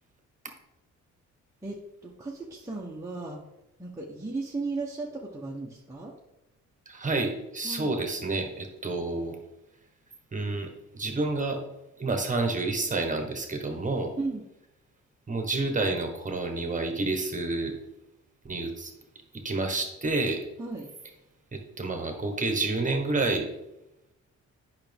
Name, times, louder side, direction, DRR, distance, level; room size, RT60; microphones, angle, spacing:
voice 1, 1.6-3.4 3.8-6.1 7.6-8.0 14.2-14.4 20.6-20.9, right 3 dB, 10° right, -4 dB, 1.1 m, -35 dB
voice 2, 6.8-9.4 10.3-11.6 12.0-14.1 15.3-17.7 18.4-18.9 19.4-20.4 21.5-23.5, right 3 dB, 25° right, 4 dB, 1.5 m, -29 dB
8.8 x 5.8 x 3.6 m, 0.91 s
cardioid pair, 90°, 30 cm